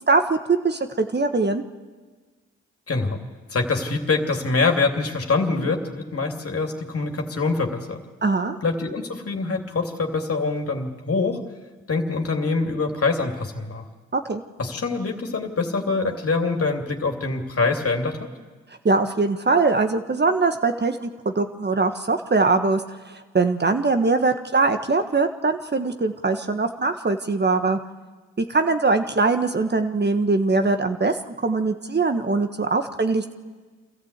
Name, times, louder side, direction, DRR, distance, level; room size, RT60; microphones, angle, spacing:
voice 1, 0.1-1.6 8.2-8.6 14.1-14.4 18.8-27.8 28.4-33.3, right 3 dB, 35° right, 7 dB, 1.5 m, -22 dB
voice 2, 2.9-3.2 3.5-8.0 8.6-11.4 11.9-13.8 14.6-18.3, left 3 dB, 50° left, 3 dB, 2.8 m, -24 dB
25.5 x 14.0 x 8.3 m, 1.4 s
supercardioid pair, 45°, 31 cm